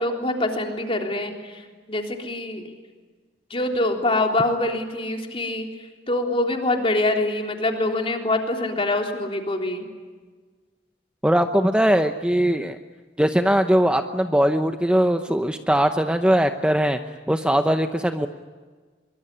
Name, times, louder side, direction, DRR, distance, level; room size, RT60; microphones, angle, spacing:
voice 1, 0.0-1.6 1.9-2.7 3.5-5.7 6.1-9.9, left 2 dB, 30° left, 3 dB, 3.6 m, -24 dB
voice 2, 11.2-12.8 13.2-17.0 17.3-18.3, equal, 5° right, 7 dB, 0.8 m, -20 dB
24.0 x 23.5 x 9.9 m, 1.4 s
head